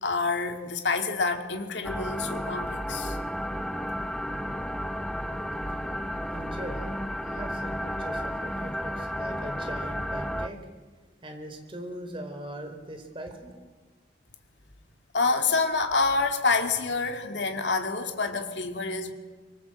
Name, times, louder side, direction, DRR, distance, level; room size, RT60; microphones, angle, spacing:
voice 1, 0.0-3.2 15.1-19.1, left 4 dB, 85° left, 2.3 m, -27 dB
sound 1, 1.8-10.5, equal, 5° left, 0.9 m, -32 dB
voice 2, 6.3-6.9 7.2-10.7 11.2-13.6, right 1 dB, 30° right, 4.2 m, -40 dB
25.0 x 24.5 x 7.8 m
head